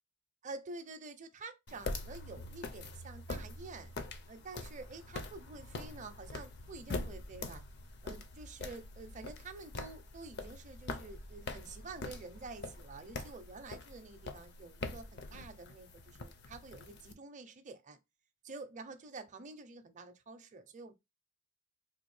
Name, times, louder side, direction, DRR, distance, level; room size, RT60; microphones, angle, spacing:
voice 1, 0.4-4.0 4.3-7.6 8.0-18.0 18.4-20.9, right 3 dB, 40° right, 0.5 m, -49 dB
sound 1, 1.7-17.1, left 2 dB, 55° left, 0.6 m, -44 dB
3.6 x 2.4 x 3.1 m
head